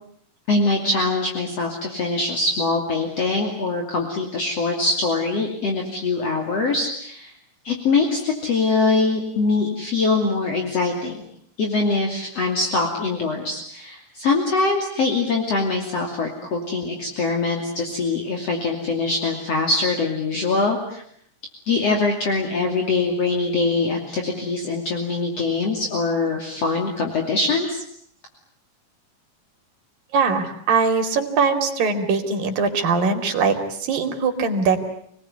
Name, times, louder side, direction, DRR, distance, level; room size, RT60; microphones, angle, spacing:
voice 1, 0.5-7.3 7.7-11.2 11.6-21.0 21.7-27.8, left 3 dB, 50° left, 2 dB, 3.7 m, -23 dB
voice 2, 30.1-34.8, right 5 dB, 90° right, 6 dB, 4.4 m, -21 dB
28.5 x 19.5 x 9.5 m, 0.68 s
omnidirectional pair, 3.9 m